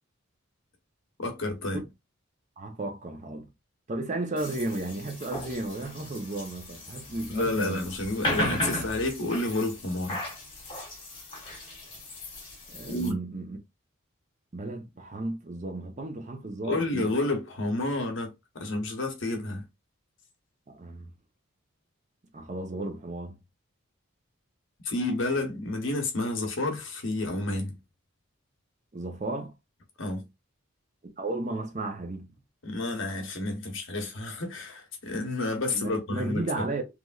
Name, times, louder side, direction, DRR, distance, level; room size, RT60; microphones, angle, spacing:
voice 1, 1.2-1.9 7.3-10.2 12.9-13.2 16.6-19.6 24.8-27.8 30.0-30.3 32.6-36.7, left 2 dB, 60° left, 0.9 m, -30 dB
voice 2, 2.6-3.5 3.9-7.9 12.7-13.6 14.5-17.1 20.7-21.1 22.3-23.4 28.9-29.5 31.2-32.3 35.7-36.8, right 2 dB, 35° right, 0.6 m, -34 dB
sound 1, 4.4-13.1, left 1 dB, 25° left, 1.0 m, -36 dB
3.1 x 2.5 x 2.3 m
head